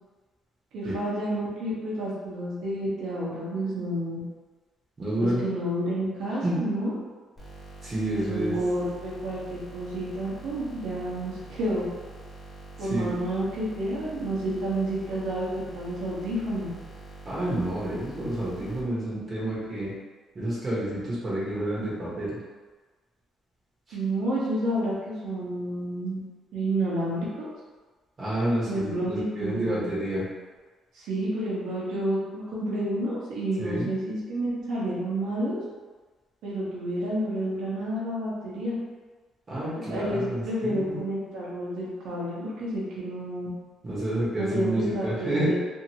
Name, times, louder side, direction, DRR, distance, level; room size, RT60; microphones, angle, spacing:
voice 1, 0.7-4.2 5.2-7.0 8.1-11.8 12.8-16.7 23.9-26.2 26.5-27.5 28.6-29.8 30.9-35.6 36.4-38.7 39.7-43.5 44.4-45.5, right 1 dB, 80° right, -7 dB, 1.0 m, -30 dB
voice 2, 5.0-5.4 6.4-6.6 7.8-8.6 12.8-13.2 17.2-19.9 20.3-22.4 23.9-24.0 28.2-30.2 33.6-33.9 39.5-41.0 43.8-45.5, right 1 dB, 30° right, -8 dB, 0.9 m, -29 dB
sound 1, 7.4-18.8, right 2 dB, 15° left, 1.2 m, -45 dB
2.8 x 2.6 x 2.9 m, 1.3 s
cardioid pair, 130°, 0 cm